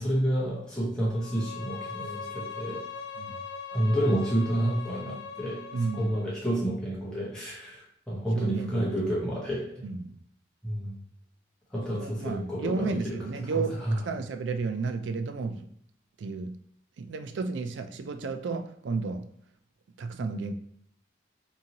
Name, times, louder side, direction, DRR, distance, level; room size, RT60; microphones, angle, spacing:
voice 1, 0.0-2.8 3.7-9.8 10.6-11.0 11.7-14.0, right 1 dB, 5° left, -7 dB, 0.7 m, -30 dB
Bowed string instrument, 1.1-6.3, left 5 dB, 70° left, 0.4 m, -40 dB
voice 2, 5.7-6.1 8.3-8.9 9.8-10.2 11.9-15.7 16.2-16.6 17.0-19.3 20.0-20.5, right 4 dB, 75° right, 8 dB, 0.4 m, -32 dB
2.7 x 2.6 x 2.8 m, 0.69 s
head